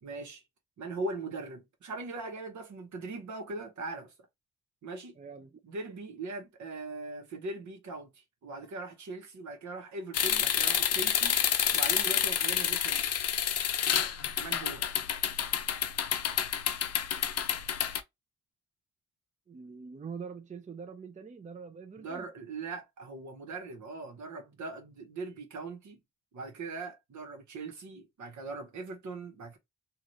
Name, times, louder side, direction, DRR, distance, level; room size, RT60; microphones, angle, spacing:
voice 1, 0.0-0.4 0.8-4.1 4.8-5.2 5.6-11.4 11.7-13.0 14.3-14.9 22.0-26.0 26.3-29.6, right 3 dB, 75° right, 1.1 m, -40 dB
voice 2, 5.2-5.5 19.5-22.3, right 5 dB, 25° right, 0.5 m, -44 dB
sound 1, 10.1-18.0, left 9 dB, 55° left, 0.5 m, -29 dB
3.0 x 2.5 x 2.6 m
cardioid pair, 75°, 30 cm